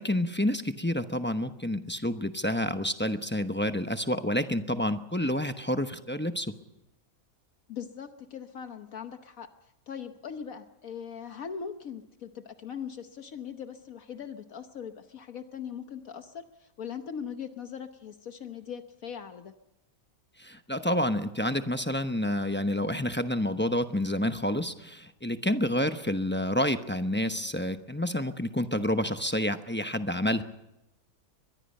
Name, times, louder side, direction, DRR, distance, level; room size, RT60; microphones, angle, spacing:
voice 1, 0.0-6.5 20.4-30.4, left 1 dB, 10° left, 8 dB, 0.8 m, -29 dB
voice 2, 7.7-19.5, left 7 dB, 70° left, 8 dB, 1.4 m, -40 dB
23.5 x 21.5 x 5.5 m, 0.90 s
omnidirectional pair, 1.6 m